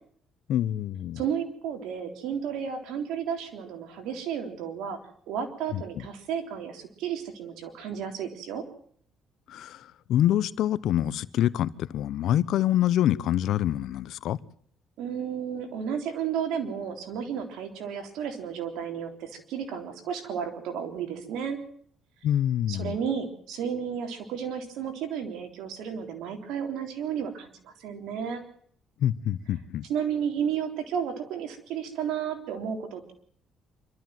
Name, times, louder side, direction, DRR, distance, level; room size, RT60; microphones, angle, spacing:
voice 1, 0.5-1.2 5.7-5.8 9.5-14.4 22.2-22.9 29.0-29.8, left 12 dB, 70° left, 0.9 m, -26 dB
voice 2, 1.1-5.0 5.3-8.6 15.0-21.6 22.7-28.4 29.9-33.1, right 8 dB, 80° right, 3.6 m, -32 dB
26.0 x 13.0 x 7.7 m
cardioid pair, 100°, 0 cm